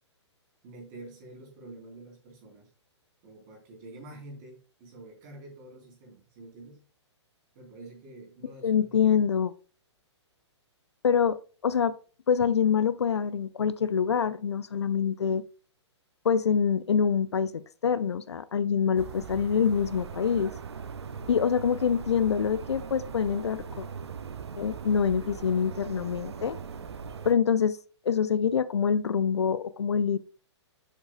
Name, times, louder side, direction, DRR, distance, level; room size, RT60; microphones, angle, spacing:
voice 1, 0.6-2.7 3.2-6.8 7.6-9.1, right 2 dB, 35° right, 3.7 m, -47 dB
voice 2, 8.6-9.5 11.0-11.9 12.3-15.4 16.2-20.5 21.3-23.8 24.6-26.6 27.2-27.8 28.0-30.2, left 7 dB, 65° left, 0.5 m, -25 dB
sound 1, 19.0-27.3, right 6 dB, 65° right, 0.7 m, -40 dB
7.7 x 6.7 x 2.2 m
figure-of-eight pair, 120°, 15 cm